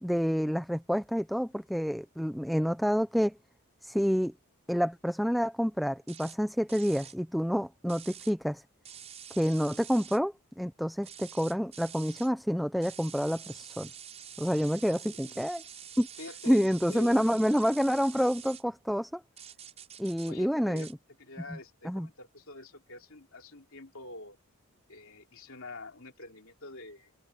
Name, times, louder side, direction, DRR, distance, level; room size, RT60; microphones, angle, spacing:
voice 1, 0.0-3.3 3.8-4.3 4.7-8.6 9.4-13.9 14.4-15.6 16.0-16.1 16.5-19.2 20.0-20.9 21.8-22.1, equal, ahead, 0.7 m, -28 dB
sound 1, 6.1-6.4 6.7-7.2 7.9-8.3 8.8-10.2 11.0-12.3 12.8-18.6 19.4-20.3 20.8-20.9, right 9 dB, 30° right, 6.0 m, -47 dB
voice 2, 14.8-15.5 16.2-17.3 20.3-20.9 21.2-24.4 24.9-27.1, left 2 dB, 65° left, 3.3 m, -46 dB
head